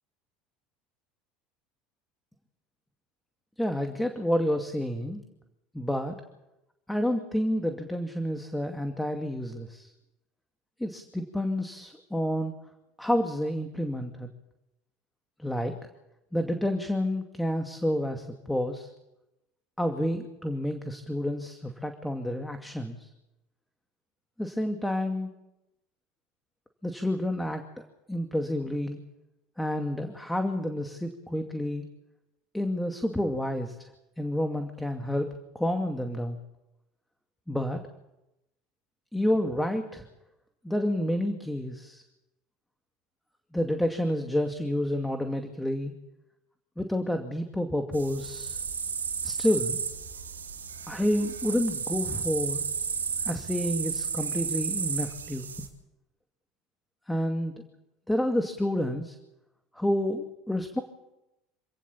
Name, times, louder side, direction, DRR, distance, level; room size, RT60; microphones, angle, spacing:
voice 1, 3.6-5.2 5.7-6.1 6.9-9.9 10.8-12.5 13.0-14.3 15.4-15.7 16.3-18.9 19.8-23.1 24.4-25.3 26.8-29.0 29.6-31.8 32.5-33.7 34.2-35.3 35.5-36.4 37.5-37.8 39.1-40.0 40.6-42.0 43.5-45.9 46.8-48.6 49.2-49.8 50.9-52.6 53.3-55.5 57.1-57.5 58.1-59.2 59.8-60.8, left 1 dB, 5° left, 5 dB, 2.4 m, -29 dB
sound 1, 47.9-55.7, right 6 dB, 90° right, 2.6 m, -33 dB
27.0 x 17.5 x 7.3 m, 0.94 s
hypercardioid pair, 75°, 0 cm